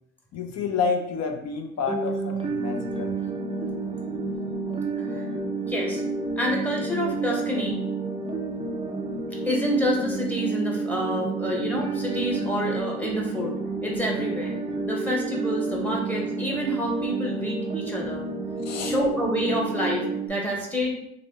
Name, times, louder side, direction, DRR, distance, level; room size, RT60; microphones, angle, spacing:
voice 1, 0.3-3.2 18.6-18.9, left 5 dB, 60° left, 4 dB, 0.5 m, -29 dB
sound 1, 1.9-20.3, right 3 dB, 20° right, 0.4 m, -30 dB
voice 2, 5.7-6.0 6.4-7.8 9.3-13.5 13.8-14.6 14.8-18.2 18.8-21.0, equal, 5° left, -1 dB, 0.8 m, -28 dB
3.2 x 2.5 x 2.7 m, 0.78 s
cardioid pair, 90°, 30 cm